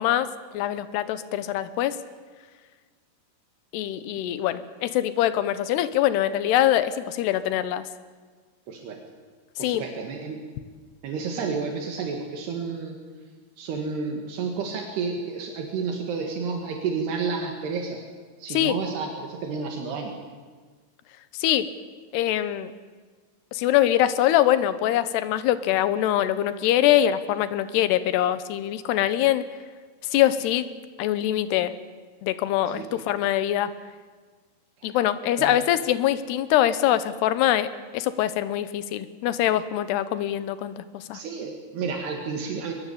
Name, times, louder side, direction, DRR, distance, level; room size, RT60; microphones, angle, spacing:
voice 1, 0.0-2.0 3.7-7.9 9.6-9.8 18.5-18.8 21.3-21.7 22.1-22.7 23.5-29.5 30.1-30.7 31.0-31.7 32.2-33.7 34.8-37.7 37.9-41.2, left 12 dB, 80° left, 13 dB, 3.1 m, -23 dB
voice 2, 8.7-9.0 9.6-10.4 11.0-13.0 13.6-18.0 18.4-20.1 32.8-33.0 34.8-35.0 35.4-35.6 41.1-42.7, right 5 dB, 75° right, 2 dB, 4.0 m, -31 dB
23.0 x 21.0 x 8.5 m, 1.5 s
omnidirectional pair, 4.7 m